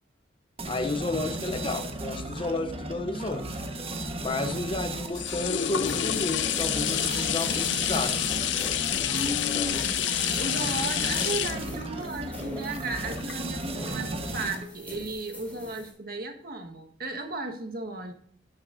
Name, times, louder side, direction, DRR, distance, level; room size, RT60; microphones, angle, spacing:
voice 1, 0.6-3.5 4.2-8.2 9.5-9.9, left 3 dB, 30° left, 0.7 m, -32 dB
sound 1, 0.6-14.8, right 2 dB, 30° right, 1.2 m, -35 dB
sound 2, 4.1-13.9 14.4-14.5, left 11 dB, 75° left, 0.6 m, -29 dB
sound 3, 5.6-15.9, left 1 dB, 10° left, 3.3 m, -44 dB
voice 2, 9.1-9.9 10.4-18.1, right 2 dB, 55° right, 1.4 m, -35 dB
12.0 x 8.0 x 2.6 m
head